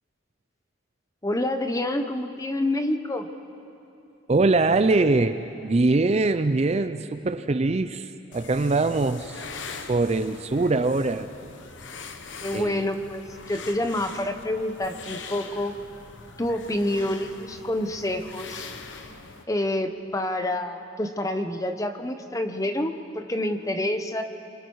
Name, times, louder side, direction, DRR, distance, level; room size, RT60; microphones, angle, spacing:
voice 1, 1.2-3.3 12.4-15.8 16.4-18.7 19.5-24.2, left 1 dB, 15° left, 7 dB, 0.9 m, -28 dB
voice 2, 4.3-9.5 9.9-11.3 12.5-13.0, right 3 dB, 30° right, 11 dB, 0.4 m, -23 dB
sound 1, 8.3-19.4, left 4 dB, 65° left, 1.1 m, -42 dB
27.0 x 23.5 x 4.7 m, 2.8 s
head